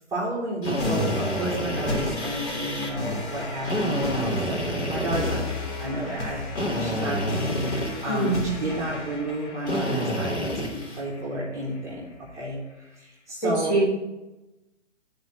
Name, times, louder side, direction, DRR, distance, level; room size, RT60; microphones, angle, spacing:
voice 1, 0.1-6.4 6.8-13.8, right 1 dB, 10° right, -6 dB, 1.0 m, -32 dB
Drill, 0.6-2.9 3.6-5.9 6.6-8.4 9.6-11.0, equal, 65° left, 2.3 m, -29 dB
sound 1, 0.8-11.8, left 2 dB, 45° left, 1.8 m, -34 dB
voice 2, 8.1-8.5 13.4-13.8, right 2 dB, 15° left, -3 dB, 1.1 m, -23 dB
8.1 x 4.0 x 5.7 m, 1.0 s
figure-of-eight pair, 140°, 36 cm